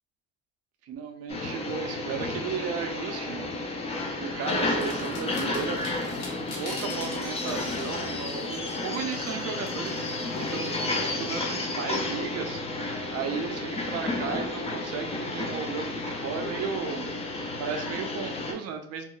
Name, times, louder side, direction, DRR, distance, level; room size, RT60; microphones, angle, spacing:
voice 1, 0.8-3.5 4.0-5.8 6.6-17.1 17.6-19.0, right 6 dB, 55° right, 6 dB, 0.5 m, -35 dB
sound 1, 1.3-18.5, left 2 dB, 20° left, 0.3 m, -32 dB
sound 2, 4.5-11.3, left 2 dB, 65° left, 1.0 m, -46 dB
2.3 x 2.0 x 3.7 m, 0.72 s
cardioid pair, 150°, 29 cm